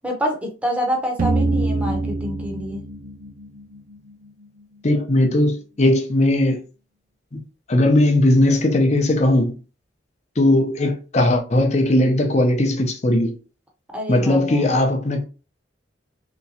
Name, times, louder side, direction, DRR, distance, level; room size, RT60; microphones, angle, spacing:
voice 1, 0.0-2.8 13.9-14.6, equal, 5° right, 0.7 m, -27 dB
sound 1, 1.2-4.1, right 2 dB, 45° right, 0.5 m, -24 dB
voice 2, 4.8-6.6 7.3-7.4 7.7-9.5 10.4-13.3 14.1-15.2, left 1 dB, 35° left, 0.6 m, -18 dB
3.3 x 3.0 x 2.7 m
head